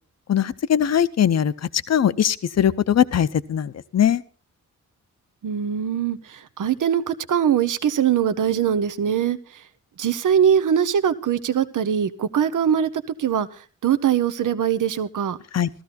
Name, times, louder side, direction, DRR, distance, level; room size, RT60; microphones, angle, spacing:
voice 1, 0.3-1.5 1.9-4.2 15.5-15.7, left 9 dB, 60° left, 14 dB, 0.7 m, -20 dB
voice 2, 5.4-9.4 10.0-12.9 13.2-13.5 13.8-15.4, right 8 dB, 80° right, 13 dB, 0.9 m, -22 dB
15.0 x 14.0 x 4.2 m, 0.39 s
wide cardioid pair, 95°, 31 cm